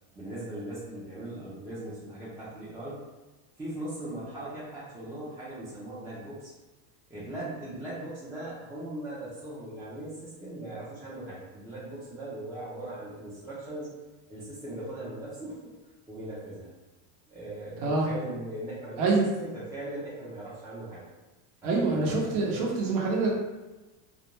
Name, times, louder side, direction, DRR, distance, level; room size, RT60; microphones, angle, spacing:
voice 1, 0.2-3.0 3.6-6.5 7.1-13.9 14.3-15.7 16.1-16.7 17.3-19.1 19.4-21.0 21.6-22.7, right 1 dB, 10° right, -9 dB, 0.3 m, -39 dB
voice 2, 21.6-23.3, right 3 dB, 80° right, -2 dB, 0.8 m, -25 dB
2.4 x 2.1 x 2.9 m, 1.1 s
supercardioid pair, 120°, 45 cm